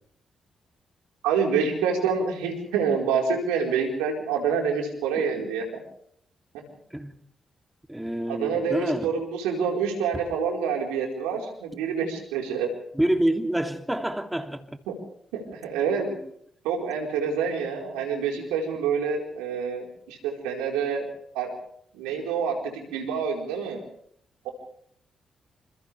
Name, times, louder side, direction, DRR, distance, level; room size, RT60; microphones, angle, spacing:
voice 1, 1.2-5.7 8.3-12.7 14.9-15.0 15.3-16.2 16.6-21.0 21.3-21.5 21.9-23.8 24.4-24.5, right 6 dB, 85° right, 4.6 m, -27 dB
voice 2, 7.9-9.1 10.1-10.2 12.9-14.7, right 1 dB, 10° right, 3.0 m, -27 dB
29.0 x 27.5 x 3.5 m
hypercardioid pair, 40°, 0 cm